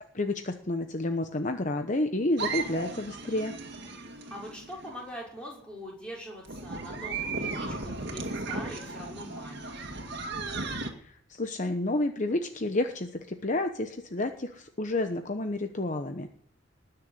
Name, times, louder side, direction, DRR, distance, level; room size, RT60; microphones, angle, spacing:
voice 1, 0.1-3.5 11.0-16.3, left 2 dB, 40° left, 7 dB, 1.0 m, -30 dB
sound 1, 2.4-5.0 6.4-10.9, right 3 dB, 55° right, 2.2 m, -36 dB
voice 2, 4.3-9.7, equal, 5° left, -3 dB, 5.9 m, -43 dB
20.0 x 6.9 x 9.6 m, 0.64 s
head